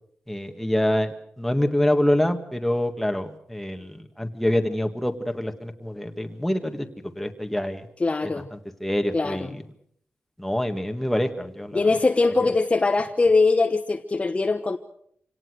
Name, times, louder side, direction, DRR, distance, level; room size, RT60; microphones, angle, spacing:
voice 1, 0.3-6.9 7.2-7.9 8.2-9.6 10.4-11.9, left 1 dB, 5° left, 5 dB, 1.8 m, -26 dB
voice 2, 8.0-8.5 9.1-9.5 11.7-14.8, left 3 dB, 30° left, 6 dB, 1.1 m, -21 dB
26.5 x 18.0 x 6.4 m, 0.67 s
wide cardioid pair, 115°, 4 cm